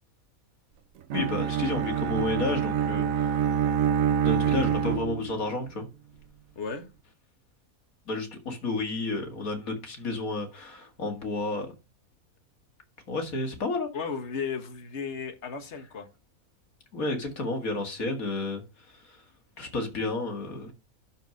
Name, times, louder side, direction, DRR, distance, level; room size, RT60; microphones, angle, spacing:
voice 1, 1.1-3.8 4.2-5.9 8.1-11.7 13.1-13.9 16.9-18.6 19.0-19.2 19.6-20.7, left 2 dB, 70° left, 2.5 m, -31 dB
Bowed string instrument, 1.1-5.5, right 8 dB, 65° right, 1.1 m, -26 dB
voice 2, 6.6-6.9 13.9-16.1, left 5 dB, 50° left, 1.7 m, -34 dB
11.5 x 4.7 x 5.2 m
omnidirectional pair, 1.5 m